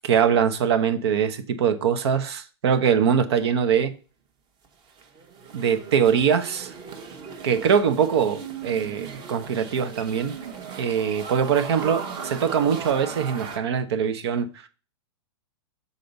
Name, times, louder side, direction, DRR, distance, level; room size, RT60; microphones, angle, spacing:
voice 1, 0.0-3.9 5.5-6.7 7.4-10.3 10.8-14.7, right 7 dB, 70° right, 1.0 m, -22 dB
sound 1, 4.6-13.6, right 6 dB, 35° right, 1.2 m, -38 dB
6.5 x 4.1 x 5.3 m
hypercardioid pair, 130°, 14 cm